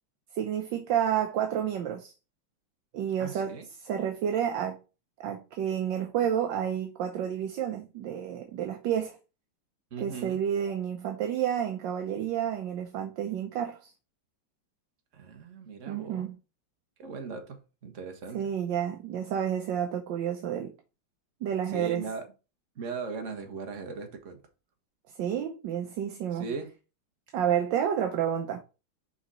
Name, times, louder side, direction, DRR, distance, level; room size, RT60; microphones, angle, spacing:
voice 1, 0.3-2.1 2.9-4.8 5.2-9.2 10.0-13.9 15.9-16.3 18.3-20.7 21.4-22.1 25.2-26.5 27.3-28.6, right 9 dB, 70° right, 1.4 m, -30 dB
voice 2, 3.2-3.6 9.9-10.4 15.1-16.3 17.0-18.4 21.7-22.3 22.7-24.4 26.3-26.7, right 4 dB, 40° right, 1.5 m, -38 dB
5.8 x 4.0 x 5.5 m
omnidirectional pair, 2.2 m